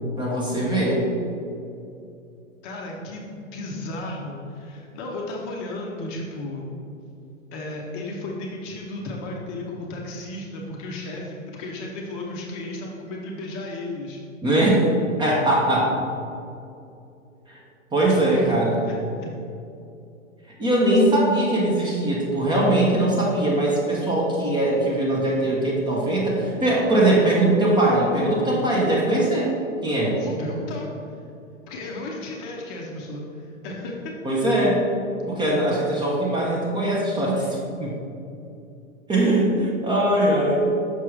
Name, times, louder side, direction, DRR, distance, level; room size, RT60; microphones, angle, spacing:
voice 1, 0.2-1.0 14.4-14.9 15.2-15.9 17.9-18.8 20.6-29.6 29.8-30.2 34.2-34.9 35.3-38.0 39.1-40.7, right 1 dB, 10° right, -4 dB, 0.7 m, -21 dB
voice 2, 2.6-6.7 7.5-14.2 18.0-19.3 30.1-31.2 31.7-34.1, left 2 dB, 30° left, -2 dB, 0.7 m, -34 dB
5.9 x 5.7 x 3.1 m, 2.6 s
figure-of-eight pair, 100°, 40 cm